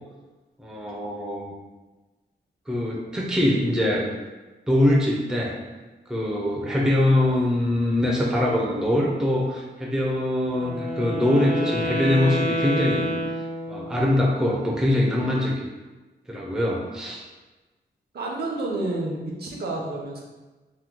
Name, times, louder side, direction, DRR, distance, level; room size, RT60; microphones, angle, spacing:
voice 1, 0.6-1.5 2.7-4.1 4.7-5.6 6.1-13.1 13.7-15.6 16.3-17.2, left 1 dB, 5° right, -3 dB, 0.4 m, -23 dB
Wind instrument woodwind instrument, 10.5-14.1, equal, 50° left, 0.6 m, -28 dB
voice 2, 18.1-20.2, right 2 dB, 60° right, -2 dB, 0.6 m, -29 dB
2.9 x 2.2 x 3.5 m, 1.2 s
wide cardioid pair, 150°, 19 cm